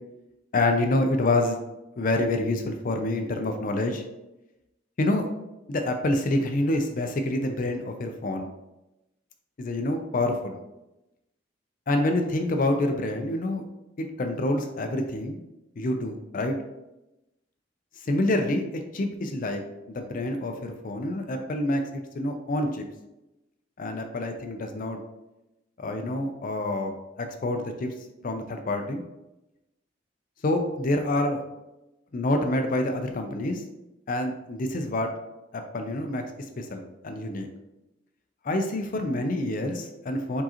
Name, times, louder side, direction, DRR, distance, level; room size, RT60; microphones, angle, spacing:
voice 1, 0.5-1.6 2.0-4.0 5.0-5.3 5.7-8.5 9.6-10.6 11.9-13.6 14.0-15.4 15.8-16.5 18.0-18.6 18.9-19.6 19.9-22.8 23.8-25.0 25.8-26.9 27.2-27.9 28.2-29.0 30.4-31.4 32.1-33.6 34.1-35.1 35.5-36.2 36.6-37.5 38.4-40.4, left 1 dB, 45° left, 5 dB, 0.5 m, -27 dB
4.8 x 3.8 x 2.9 m, 0.94 s
head